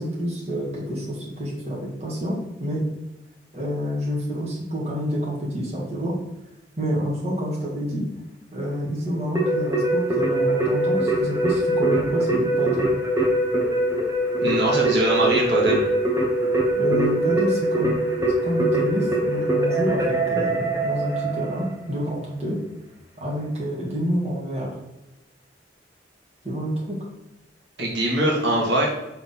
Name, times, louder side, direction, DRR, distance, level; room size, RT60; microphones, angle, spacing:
voice 1, 0.0-2.9 3.5-6.1 6.8-8.1 8.5-12.9 16.7-18.0 18.4-22.6 23.2-24.7 26.4-27.0, equal, 35° right, -4 dB, 1.9 m, -28 dB
Keyboard (musical), 9.4-21.8, right 1 dB, 15° right, 1.1 m, -22 dB
voice 2, 14.4-15.9 27.8-28.9, right 1 dB, 70° right, -2 dB, 1.6 m, -22 dB
6.7 x 3.5 x 5.7 m, 0.95 s
head